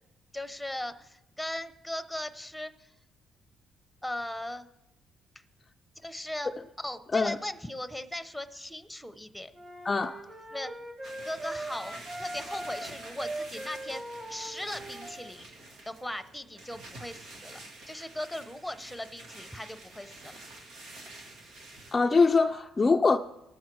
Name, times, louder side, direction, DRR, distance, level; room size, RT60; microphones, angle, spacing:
voice 1, 0.3-2.9 4.0-4.7 6.0-6.5 6.8-9.5 10.5-10.7 11.0-15.5 15.9-20.4, left 1 dB, 5° left, 0.8 m, -38 dB
sound 1, 9.5-15.3, right 1 dB, 25° right, 1.5 m, -40 dB
voice 2, 9.8-10.2 21.9-23.2, left 4 dB, 30° left, 0.4 m, -23 dB
sound 2, 11.0-21.9, right 2 dB, 85° right, 1.9 m, -48 dB
18.5 x 7.3 x 4.6 m
cardioid pair, 90°, 0 cm